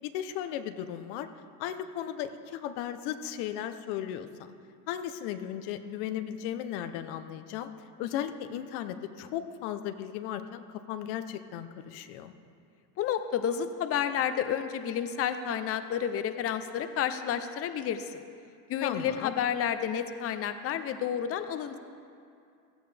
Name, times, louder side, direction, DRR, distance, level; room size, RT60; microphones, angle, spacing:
voice 1, 0.0-1.3 1.6-4.5 4.9-7.7 8.0-12.3 18.8-19.3, left 10 dB, 80° left, 9 dB, 0.9 m, -36 dB
voice 2, 13.0-18.2 18.7-21.8, left 9 dB, 35° left, 9 dB, 0.7 m, -30 dB
16.5 x 14.5 x 3.4 m, 2.5 s
cardioid pair, 125°, 38 cm